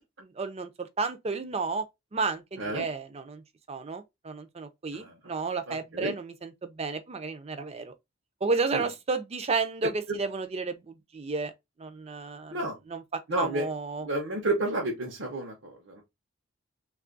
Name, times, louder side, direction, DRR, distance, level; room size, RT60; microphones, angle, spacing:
voice 1, 0.2-1.9 2.1-3.4 3.7-7.9 8.4-11.5 11.8-12.6 12.9-13.0 13.4-14.1, right 4 dB, 30° right, 0.5 m, -32 dB
voice 2, 4.9-5.3 5.7-6.1 8.7-8.8 10.1-10.2 12.5-12.8 13.3-13.7 14.0-16.0, right 2 dB, 70° right, 0.8 m, -31 dB
3.1 x 2.4 x 3.8 m
head